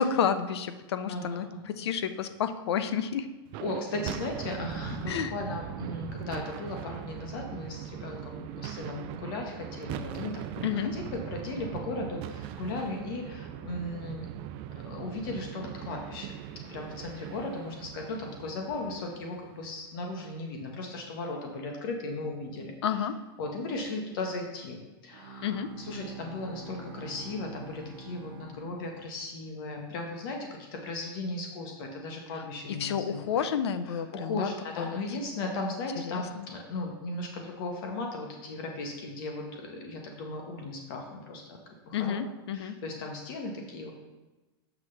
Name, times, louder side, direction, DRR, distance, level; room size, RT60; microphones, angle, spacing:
voice 1, 0.0-3.3 5.1-5.3 10.6-10.9 22.8-23.2 25.4-25.7 32.3-32.4 32.8-34.5 34.8-35.0 36.0-36.4 41.9-42.8, left 7 dB, 80° left, 11 dB, 0.6 m, -30 dB
voice 2, 1.1-1.7 3.6-10.6 10.9-14.3 14.8-16.4 16.7-22.7 23.4-33.3 33.9-41.6 41.9-42.2 42.5-43.9, left 2 dB, 60° left, 2 dB, 1.3 m, -37 dB
sound 1, 3.4-19.8, right 11 dB, 40° right, 0.4 m, -40 dB
Bowed string instrument, 25.1-29.5, right 3 dB, 85° right, 0.6 m, -46 dB
7.3 x 6.0 x 3.3 m, 1.1 s
supercardioid pair, 140°, 14 cm